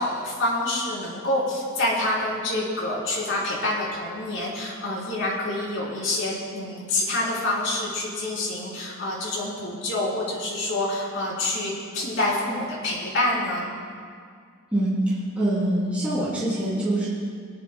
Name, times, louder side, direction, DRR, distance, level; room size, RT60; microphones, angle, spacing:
voice 1, 0.0-13.7, left 1 dB, 60° left, -5 dB, 3.7 m, -27 dB
voice 2, 14.7-17.1, right 1 dB, 5° right, -10 dB, 3.0 m, -24 dB
22.0 x 12.0 x 2.3 m, 2.1 s
head